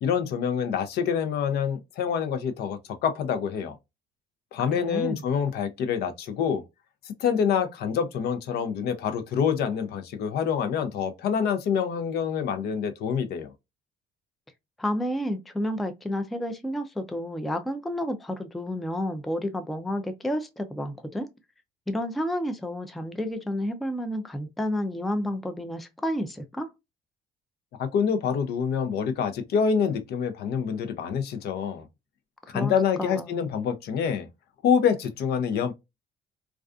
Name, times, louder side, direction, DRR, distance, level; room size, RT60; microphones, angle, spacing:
voice 1, 0.0-3.8 4.5-6.6 7.0-13.5 27.8-31.9 32.5-34.3 34.6-35.7, left 7 dB, 70° left, 0.5 m, -26 dB
voice 2, 4.7-5.2 14.8-21.3 21.9-26.7 32.5-33.4, equal, ahead, 0.3 m, -30 dB
2.4 x 2.3 x 2.4 m
cardioid pair, 110°, 17 cm